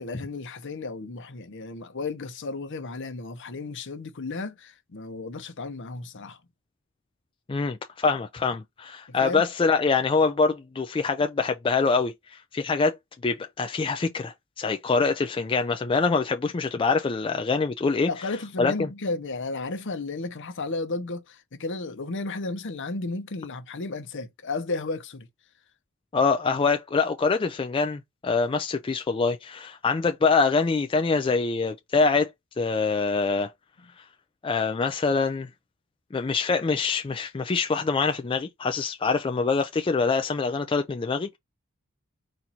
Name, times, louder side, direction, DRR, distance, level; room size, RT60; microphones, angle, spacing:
voice 1, 0.0-6.4 9.2-9.4 18.1-25.3, left 3 dB, 60° left, 0.8 m, -33 dB
voice 2, 7.5-13.0 13.2-18.1 18.6-18.9 26.1-32.3 32.6-33.5 34.4-35.5 36.1-41.4, left 4 dB, 25° left, 0.4 m, -25 dB
4.3 x 2.5 x 4.1 m
head